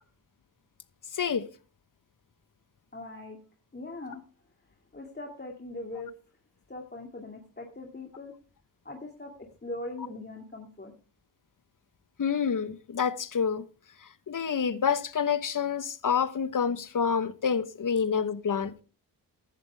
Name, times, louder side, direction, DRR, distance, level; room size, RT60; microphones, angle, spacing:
voice 1, 1.1-1.5 12.2-13.6 14.3-18.8, left 6 dB, 45° left, 1.2 m, -28 dB
voice 2, 2.9-3.4 3.7-4.2 4.9-6.2 6.7-8.3 8.8-10.9, left 2 dB, 25° left, 2.3 m, -41 dB
15.5 x 11.5 x 3.4 m
cardioid pair, 55°, 43 cm